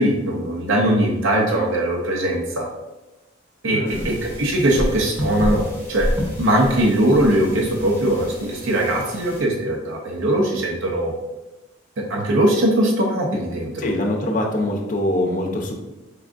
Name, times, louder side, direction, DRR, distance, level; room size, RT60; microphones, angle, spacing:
voice 1, 0.0-2.7 3.6-6.1 6.4-11.1 12.1-13.9, right 1 dB, 80° right, 0 dB, 0.6 m, -20 dB
voice 2, 3.7-4.1 13.8-15.7, left 1 dB, 40° left, 1 dB, 0.6 m, -23 dB
sound 1, 3.8-9.4, equal, 15° right, 1.1 m, -30 dB
4.7 x 3.5 x 2.5 m, 1.0 s
head